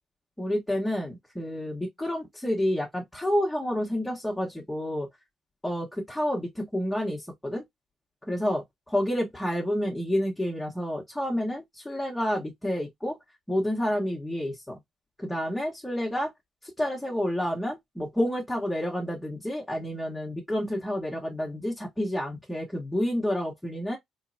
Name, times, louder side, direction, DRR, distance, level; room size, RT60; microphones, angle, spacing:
voice 1, 0.4-5.1 5.6-7.6 8.3-13.2 13.5-14.8 15.2-16.3 16.8-24.0, equal, 10° left, 1.3 m, -29 dB
3.8 x 3.1 x 2.7 m
cardioid pair, 90°, 0 cm